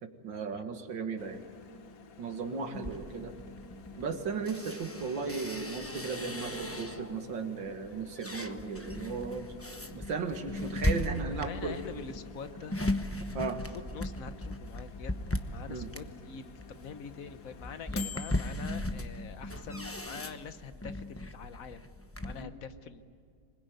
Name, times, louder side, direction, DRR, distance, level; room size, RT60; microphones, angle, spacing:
voice 1, 0.0-1.4 2.2-3.3 4.0-9.5 9.9-11.8 13.3-13.6 15.7-15.9 22.4-22.5, right 5 dB, 75° right, 7 dB, 2.4 m, -36 dB
Microwave oven, 1.2-18.9, left 6 dB, 85° left, 2.1 m, -52 dB
sound 1, 2.7-7.2 7.7-22.4, left 1 dB, 10° left, 0.6 m, -37 dB
sound 2, 3.7-11.2, right 2 dB, 45° right, 2.4 m, -56 dB
voice 2, 11.4-12.8 13.5-15.2 15.5-21.9 22.2-23.0, left 6 dB, 50° left, 11 dB, 1.3 m, -45 dB
26.0 x 20.5 x 9.3 m, 2.3 s
omnidirectional pair, 2.1 m